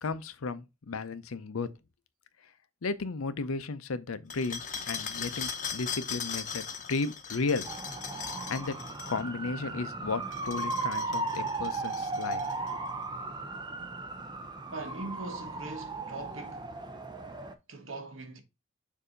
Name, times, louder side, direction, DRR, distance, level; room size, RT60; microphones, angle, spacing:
voice 1, 0.0-1.7 2.8-7.7 8.5-8.7 9.1-12.4, left 4 dB, 85° left, 0.6 m, -34 dB
sound 1, 4.3-9.2 10.2-12.7, left 6 dB, 35° left, 0.8 m, -39 dB
sound 2, 7.6-17.5, right 3 dB, 20° right, 0.6 m, -36 dB
voice 2, 14.7-16.7 17.7-18.4, right 2 dB, 70° right, 1.2 m, -41 dB
6.8 x 2.7 x 5.0 m
head